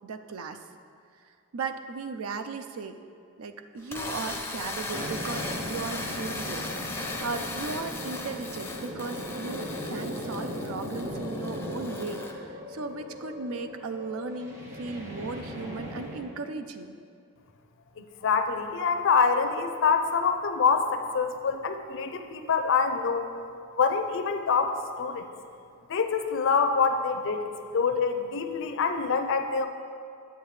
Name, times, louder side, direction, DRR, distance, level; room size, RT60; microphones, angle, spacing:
voice 1, 0.0-0.6 1.5-3.0 3.4-17.0, right 4 dB, 65° right, 8 dB, 0.5 m, -37 dB
sound 1, 3.8-12.3, left 2 dB, 10° left, 0.5 m, -38 dB
sound 2, 4.9-16.2, equal, 35° right, 1.5 m, -37 dB
voice 2, 18.0-23.3 23.7-25.3 25.9-29.7, left 5 dB, 60° left, 7 dB, 0.5 m, -26 dB
9.2 x 7.8 x 3.2 m, 2.4 s
head